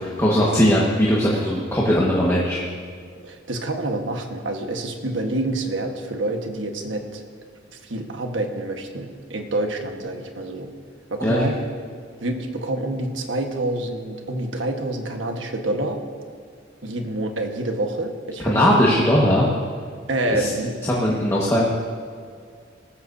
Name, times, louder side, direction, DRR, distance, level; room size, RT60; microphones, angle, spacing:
voice 1, 0.0-2.6 11.2-11.4 18.4-19.4 20.4-20.5 20.9-21.6, equal, 15° left, -6 dB, 1.5 m, -19 dB
voice 2, 3.2-7.2 7.7-10.7 11.1-11.6 12.2-16.0 16.8-18.8 20.1-20.8, right 1 dB, 80° right, 4 dB, 1.4 m, -27 dB
18.0 x 14.5 x 2.7 m, 2.1 s
head